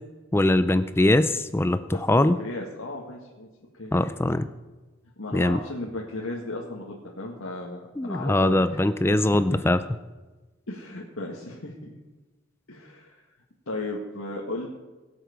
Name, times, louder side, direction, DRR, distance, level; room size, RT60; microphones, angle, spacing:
voice 1, 0.3-1.8 2.1-2.3 3.9-4.5 5.3-5.6 8.0-9.8, left 1 dB, 10° left, 12 dB, 0.4 m, -21 dB
voice 2, 1.9-3.5 3.7-3.9 5.2-8.8 9.1-9.6 10.7-11.9 12.7-13.2 13.7-14.7, left 2 dB, 80° left, -3 dB, 1.8 m, -35 dB
22.0 x 7.9 x 5.1 m, 1.2 s
head